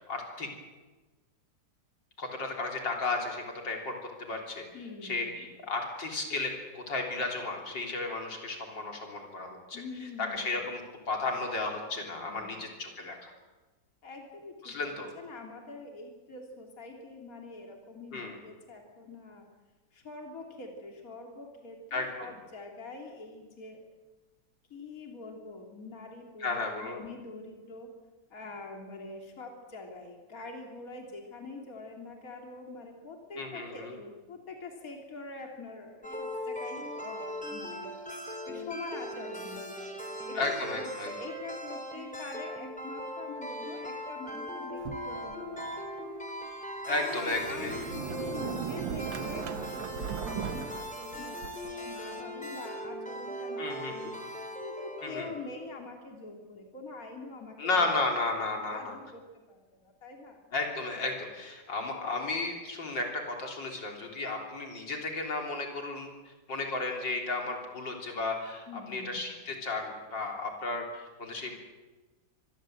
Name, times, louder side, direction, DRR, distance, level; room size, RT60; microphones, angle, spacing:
voice 1, 0.1-0.5 2.2-3.9 4.2-4.6 5.0-9.8 10.2-10.8 11.1-13.3 14.6-15.1 18.1-18.4 21.9-22.3 26.4-27.0 33.4-33.9 40.3-41.1 46.9-47.7 53.6-54.1 55.0-55.3 57.6-58.9 60.5-71.5, left 3 dB, 75° left, 1 dB, 4.2 m, -34 dB
voice 2, 4.7-5.5 9.7-10.6 12.3-12.7 14.0-19.5 19.9-23.8 24.7-27.9 28.3-37.9 38.5-46.0 46.9-57.9 58.4-60.4 68.7-69.3, left 3 dB, 50° left, 1 dB, 3.4 m, -45 dB
sound 1, 36.0-55.9, equal, 5° left, 3.2 m, -40 dB
Sliding door, 44.8-45.7 46.3-46.4 47.0-51.8, right 8 dB, 90° right, 1.9 m, -38 dB
25.5 x 20.5 x 7.8 m, 1.2 s
omnidirectional pair, 2.0 m